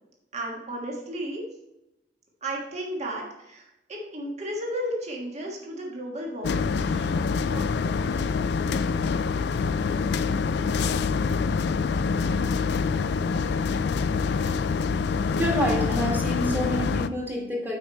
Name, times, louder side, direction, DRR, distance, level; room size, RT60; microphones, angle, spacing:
voice 1, 0.3-1.4 2.4-8.3, right 1 dB, 40° right, -1 dB, 1.5 m, -34 dB
sound 1, 6.4-17.1, left 5 dB, 65° left, 0.4 m, -25 dB
voice 2, 15.1-17.8, equal, 10° right, -2 dB, 1.7 m, -28 dB
8.3 x 4.8 x 4.3 m, 0.91 s
head